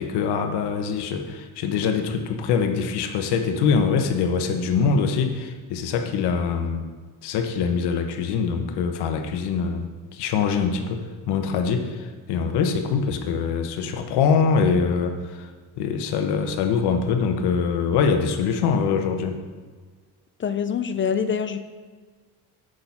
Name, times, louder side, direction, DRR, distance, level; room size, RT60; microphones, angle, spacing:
voice 1, 0.0-6.8 7.2-9.8 10.1-15.5 15.8-19.4, left 5 dB, 75° left, 6 dB, 1.1 m, -23 dB
voice 2, 20.4-21.6, left 7 dB, 30° left, 10 dB, 0.5 m, -25 dB
7.7 x 6.4 x 5.7 m, 1.5 s
cardioid pair, 115°, 40 cm